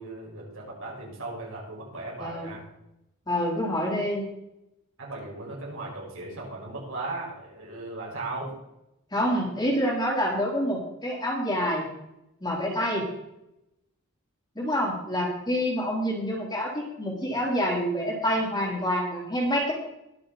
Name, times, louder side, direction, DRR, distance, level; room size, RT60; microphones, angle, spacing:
voice 1, 0.0-2.6 5.0-8.5, right 2 dB, 70° right, -3 dB, 5.7 m, -37 dB
voice 2, 2.2-2.5 3.3-4.2 9.1-11.9 12.4-13.0 14.6-19.7, equal, 20° left, -3 dB, 3.8 m, -27 dB
21.0 x 7.1 x 4.2 m, 0.86 s
head